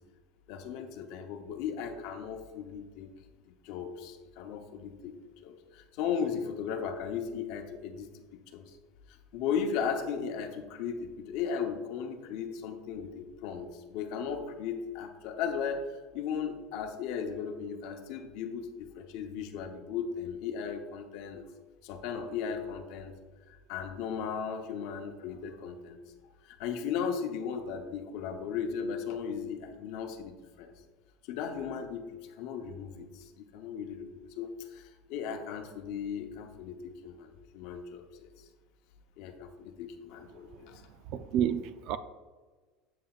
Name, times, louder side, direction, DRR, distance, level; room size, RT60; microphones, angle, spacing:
voice 1, 0.5-3.1 3.6-8.2 8.5-8.7 9.3-21.4 21.8-23.1 23.5-26.0 26.5-30.7 31.3-32.1 32.4-38.3 39.2-40.8, left 7 dB, 55° left, 0.7 m, -36 dB
voice 2, 41.1-42.0, right 9 dB, 45° right, 0.3 m, -29 dB
7.6 x 7.6 x 2.3 m
cardioid pair, 170°, 0 cm